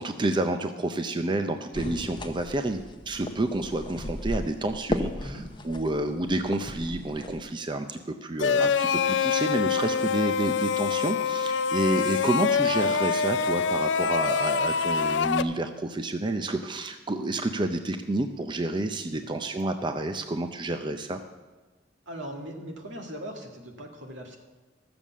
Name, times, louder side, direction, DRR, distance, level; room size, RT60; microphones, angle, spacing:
voice 1, 0.0-21.2, right 2 dB, 25° right, 7 dB, 0.5 m, -29 dB
sound 1, 1.7-7.4, left 1 dB, 25° left, 0.8 m, -36 dB
sound 2, 8.4-15.4, left 6 dB, 70° left, 0.5 m, -25 dB
voice 2, 22.1-24.4, equal, 80° right, 2 dB, 2.0 m, -39 dB
14.0 x 7.0 x 7.3 m, 1.3 s
head